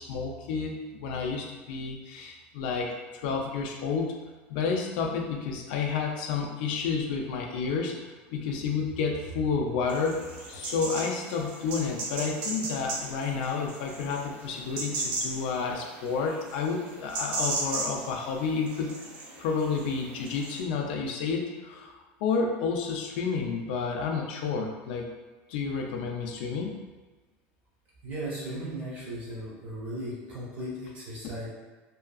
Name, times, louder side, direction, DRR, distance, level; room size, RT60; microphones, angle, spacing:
voice 1, 0.0-4.1 4.5-8.0 8.3-10.2 10.5-18.9 19.4-21.9 22.2-25.1 25.5-26.8, left 5 dB, 65° left, 1 dB, 0.4 m, -30 dB
sound 1, 9.9-20.6, right 2 dB, 80° right, 0.6 m, -37 dB
voice 2, 28.0-31.5, right 1 dB, 30° right, -7 dB, 0.7 m, -36 dB
2.7 x 2.4 x 2.3 m, 1.3 s
cardioid pair, 175°, 5 cm